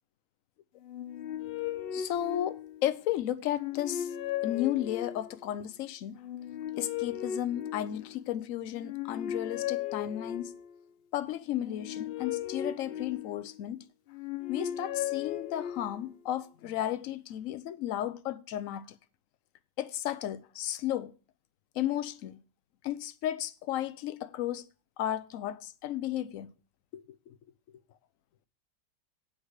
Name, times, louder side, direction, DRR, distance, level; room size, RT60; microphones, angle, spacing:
sound 1, 0.8-3.0 3.4-5.5 6.2-8.3 8.8-10.8 11.5-13.6 14.1-16.1, left 11 dB, 85° left, 0.5 m, -37 dB
voice 1, 1.9-4.1 4.4-6.2 6.8-10.5 11.1-13.8 14.5-18.8 19.8-21.1 21.7-22.4 22.8-24.7 25.0-26.5 26.9-27.4, left 12 dB, 65° left, 0.9 m, -34 dB
8.6 x 5.0 x 6.4 m
omnidirectional pair, 1.8 m